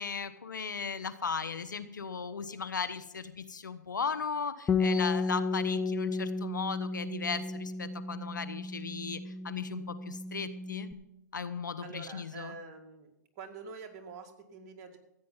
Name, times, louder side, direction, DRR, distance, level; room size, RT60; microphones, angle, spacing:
voice 1, 0.0-10.9 11.3-12.5, left 5 dB, 90° left, 13 dB, 1.2 m, -37 dB
Bass guitar, 4.7-10.9, left 4 dB, 10° left, 0.5 m, -33 dB
voice 2, 11.8-13.1 13.4-15.0, right 5 dB, 35° right, 3 dB, 2.1 m, -46 dB
14.5 x 9.0 x 5.7 m, 0.85 s
hypercardioid pair, 135°, 10 cm